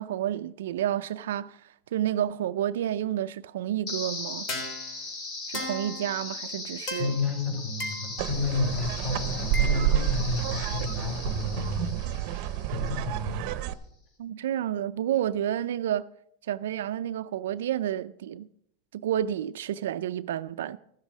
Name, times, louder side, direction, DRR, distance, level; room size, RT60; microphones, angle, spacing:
voice 1, 0.0-4.5 5.5-7.1 14.2-16.1 16.5-18.5 18.9-20.8, right 11 dB, 85° right, 0.4 m, -30 dB
sound 1, 3.9-12.9, left 2 dB, 50° left, 3.6 m, -37 dB
voice 2, 7.0-13.5, left 4 dB, 30° left, 4.8 m, -31 dB
sound 2, 8.2-13.7, right 13 dB, 55° right, 0.7 m, -29 dB
14.5 x 7.3 x 6.1 m
supercardioid pair, 130°, 0 cm